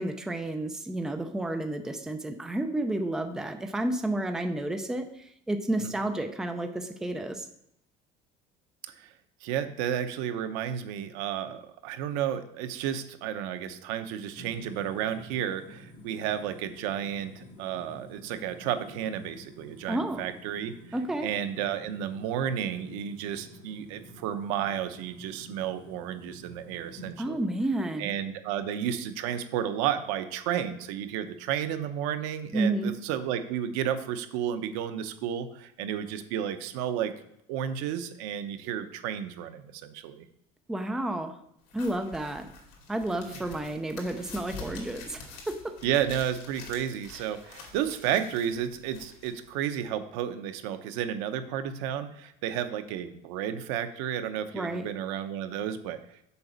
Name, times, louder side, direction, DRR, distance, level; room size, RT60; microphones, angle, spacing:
voice 1, 0.0-7.5 19.9-20.3 20.9-21.3 27.2-28.1 32.5-33.0 40.7-41.4 41.7-42.5 42.9-45.7 47.1-47.2 54.5-54.9, right 1 dB, 5° right, 6 dB, 0.4 m, -31 dB
voice 2, 9.4-20.7 21.2-27.4 28.0-37.1 37.5-40.2 43.3-43.4 45.8-56.0, right 9 dB, 90° right, 10 dB, 0.9 m, -32 dB
sound 1, 14.3-27.1, equal, 30° left, 3.0 m, -50 dB
crumbling-paper, 41.7-49.8, left 4 dB, 75° left, 2.6 m, -47 dB
6.9 x 5.0 x 6.8 m, 0.76 s
cardioid pair, 175°, 17 cm